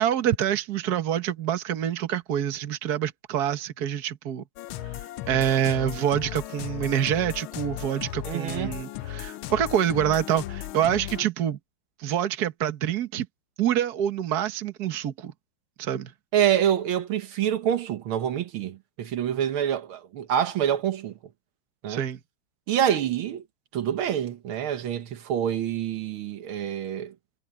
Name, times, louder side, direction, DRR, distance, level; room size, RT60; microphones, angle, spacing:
voice 1, 0.0-4.4 5.3-11.6 12.0-13.3 13.6-15.3 15.8-16.1 21.9-22.2, right 10 dB, 50° right, 1.6 m, -26 dB
sound 1, 4.6-11.2, left 13 dB, 80° left, 1.5 m, -36 dB
voice 2, 8.2-8.8 16.3-21.1 21.8-22.0 22.7-23.4 23.7-27.1, right 10 dB, 75° right, 1.9 m, -26 dB
omnidirectional pair, 2.3 m